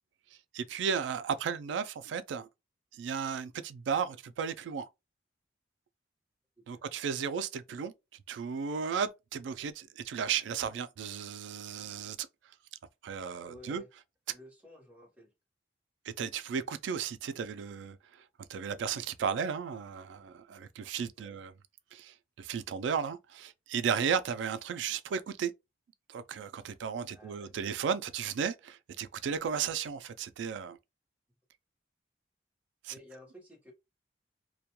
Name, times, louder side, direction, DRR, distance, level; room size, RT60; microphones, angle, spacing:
voice 1, 0.5-2.5 2.9-4.9 6.7-7.9 8.3-12.3 13.0-13.8 16.1-18.2 18.5-21.5 21.9-25.5 26.1-30.8 32.8-32.9, right 6 dB, 85° right, 0.3 m, -34 dB
voice 2, 13.5-13.9 14.3-15.3 21.2-21.4 27.1-27.7 32.9-33.7, left 1 dB, 10° right, 0.8 m, -53 dB
2.2 x 2.2 x 2.8 m
head